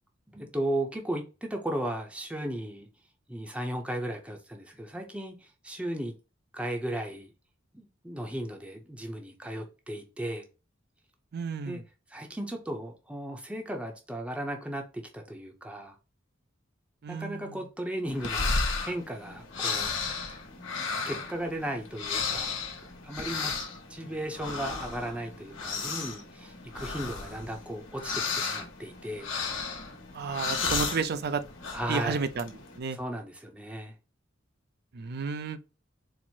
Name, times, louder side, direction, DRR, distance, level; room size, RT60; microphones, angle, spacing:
voice 1, 0.3-2.9 3.3-6.1 6.5-7.3 7.7-10.4 11.6-11.8 12.1-15.9 17.1-18.5 18.8-19.9 20.8-22.5 23.0-23.5 23.9-29.3 31.7-32.3 32.9-33.9, right 1 dB, 5° right, 0.6 m, -35 dB
voice 2, 11.3-11.8 17.0-17.6 30.1-31.4 31.9-33.0 34.9-35.6, right 5 dB, 55° right, 0.4 m, -32 dB
sound 1, 18.1-32.8, left 4 dB, 70° left, 1.2 m, -34 dB
4.3 x 2.0 x 4.4 m
head